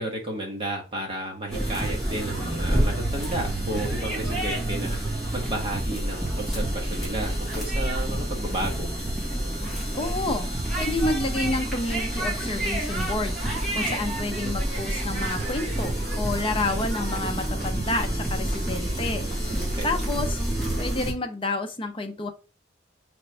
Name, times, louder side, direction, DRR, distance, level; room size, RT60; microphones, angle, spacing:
voice 1, 0.0-8.9 19.6-19.9, right 1 dB, 25° right, 1.2 m, -32 dB
sound 1, 1.5-21.1, right 1 dB, ahead, 1.7 m, -28 dB
voice 2, 10.0-19.3 19.8-20.4 20.8-22.3, left 2 dB, 30° left, 0.7 m, -29 dB
3.9 x 3.4 x 3.4 m
head